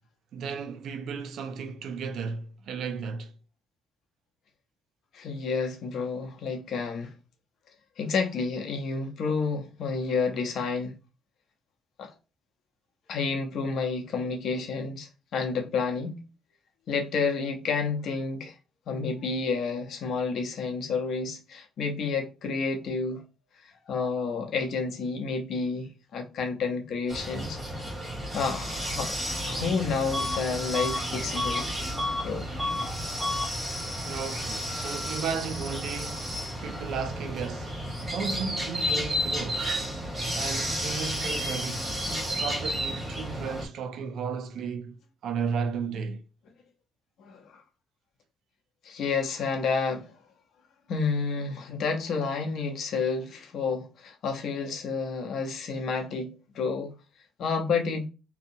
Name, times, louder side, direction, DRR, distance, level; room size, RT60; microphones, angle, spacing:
voice 1, 0.3-3.3 34.0-36.3 36.6-37.8 38.1-39.7 40.3-46.2, right 6 dB, 70° right, 0.4 m, -34 dB
voice 2, 5.1-7.1 8.0-10.9 12.0-12.1 13.1-16.2 16.9-18.6 18.9-23.2 23.9-27.8 28.3-29.2 29.4-31.7 32.2-32.5 47.2-47.6 48.8-50.1 50.9-56.9 57.4-58.1, left 4 dB, 65° left, 0.7 m, -30 dB
sound 1, 27.1-43.7, equal, 30° right, 1.4 m, -32 dB
Bus / Alarm, 30.1-30.4 30.7-32.3 32.6-32.9 33.2-33.5, left 2 dB, 5° right, 0.3 m, -31 dB
2.7 x 2.0 x 2.6 m
cardioid pair, 105°, 0 cm